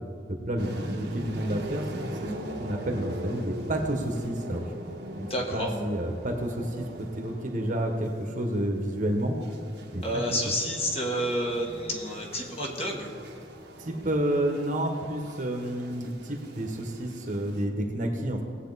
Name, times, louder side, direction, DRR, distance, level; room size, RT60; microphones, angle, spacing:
voice 1, 0.4-1.9 2.2-2.3 2.6-4.6 5.2-5.3 5.5-6.8 7.2-9.3 9.9-10.2 13.8-18.4, right 1 dB, 45° right, 3 dB, 1.3 m, -30 dB
sound 1, 0.6-17.6, right 1 dB, 60° right, 1.3 m, -41 dB
voice 2, 5.3-5.7 10.0-13.1, equal, 35° left, 0 dB, 1.6 m, -29 dB
18.5 x 8.1 x 4.1 m, 2.3 s
head